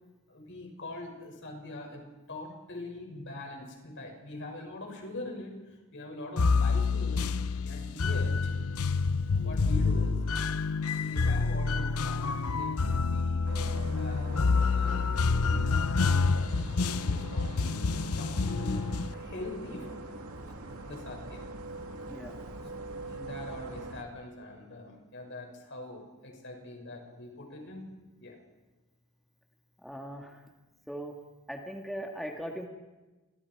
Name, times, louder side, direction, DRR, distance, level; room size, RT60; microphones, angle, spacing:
voice 1, 0.3-2.0 2.3-5.6 5.9-7.3 7.6-8.5 9.4-10.2 11.0-15.0 15.5-16.6 17.0-17.7 18.1-20.1 20.5-20.6 20.9-21.5 22.8-27.9 28.2-28.4, left 2 dB, 55° left, 1 dB, 6.4 m, -43 dB
sound 1, 6.4-19.1, left 4 dB, 80° left, 0.7 m, -28 dB
sound 2, 13.4-24.0, right 2 dB, 75° right, 2.4 m, -43 dB
voice 2, 22.1-22.4 29.8-30.4 30.9-31.1 31.5-32.6, equal, ahead, 1 dB, 1.8 m, -39 dB
29.0 x 23.5 x 4.8 m, 1.2 s
head